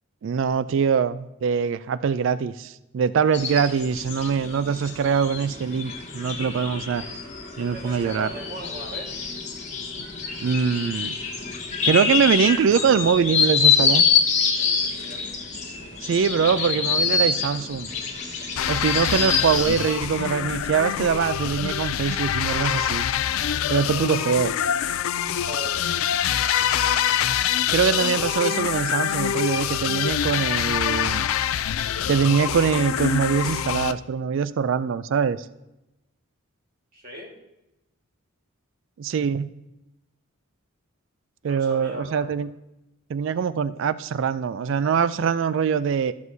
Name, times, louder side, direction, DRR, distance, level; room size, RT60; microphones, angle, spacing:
voice 1, 0.2-7.1 7.6-8.3 10.4-11.2 11.9-14.0 16.0-17.9 18.7-23.1 23.7-24.5 27.7-31.3 32.1-35.4 39.0-39.5 41.4-42.5 43.1-46.1, right 6 dB, 60° right, 15 dB, 0.3 m, -23 dB
sound 1, 3.3-19.9, left 5 dB, 35° left, 1.2 m, -26 dB
voice 2, 7.6-9.1 14.6-15.2 25.4-25.8 36.9-37.3 41.4-42.3, equal, 40° right, -1 dB, 1.7 m, -39 dB
sound 2, 18.6-33.9, left 9 dB, 75° left, 0.4 m, -25 dB
13.0 x 6.2 x 2.7 m, 0.93 s
head